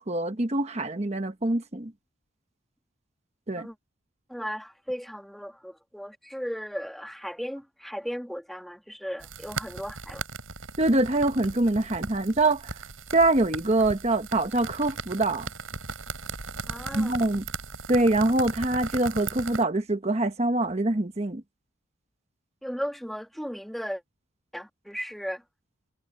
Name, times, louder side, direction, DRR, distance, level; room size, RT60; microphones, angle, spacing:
voice 1, 0.0-1.9 3.5-3.7 10.8-12.8 13.1-15.5 16.9-17.4 17.9-21.4, right 2 dB, 30° right, 1.1 m, -24 dB
voice 2, 4.3-10.2 16.7-17.1 22.6-24.0 24.5-25.4, equal, ahead, 1.8 m, -36 dB
sound 1, 9.2-19.6, right 4 dB, 80° right, 7.7 m, -38 dB
head